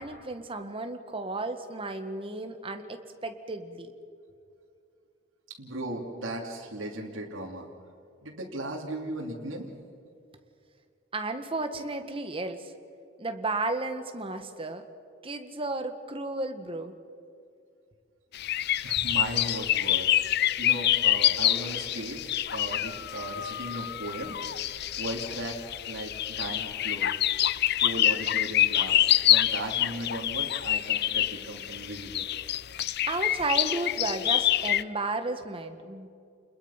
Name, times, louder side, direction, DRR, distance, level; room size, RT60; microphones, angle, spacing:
voice 1, 0.0-3.9 11.1-12.7 13.2-14.8 15.2-16.9 33.1-36.1, right 2 dB, 30° right, 7 dB, 1.6 m, -33 dB
voice 2, 5.6-7.7 8.2-9.7 18.8-24.4 24.7-25.6 25.9-27.1 27.8-29.0 29.3-32.3, right 1 dB, 75° right, -1 dB, 3.0 m, -37 dB
sound 1, 18.3-34.8, left 13 dB, 55° left, 0.5 m, -26 dB
29.5 x 21.5 x 5.8 m, 2.5 s
head